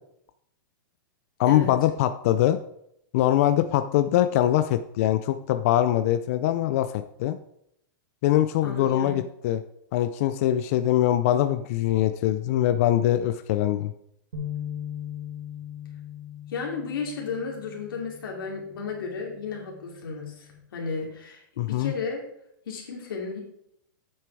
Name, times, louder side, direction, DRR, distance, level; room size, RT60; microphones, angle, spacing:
voice 1, 1.4-2.6 3.1-7.4 8.2-9.6 9.9-13.9 21.6-21.9, left 12 dB, 40° left, 10 dB, 0.4 m, -23 dB
voice 2, 8.6-9.2 16.5-21.4 21.7-22.2 22.7-23.4, left 4 dB, 85° left, -1 dB, 2.7 m, -33 dB
sound 1, 14.3-20.6, left 9 dB, 80° right, 2.3 m, -40 dB
8.5 x 6.7 x 4.7 m, 0.74 s
hypercardioid pair, 160°, 11 cm